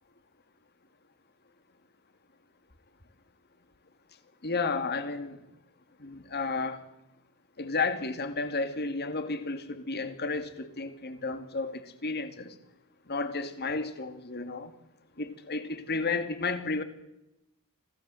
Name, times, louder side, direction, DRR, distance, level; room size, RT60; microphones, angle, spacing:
voice 1, 4.4-5.4 6.0-6.8 7.6-12.5 13.1-14.7 15.2-16.8, left 3 dB, 50° left, 2.4 m, -32 dB
26.0 x 16.5 x 7.8 m
head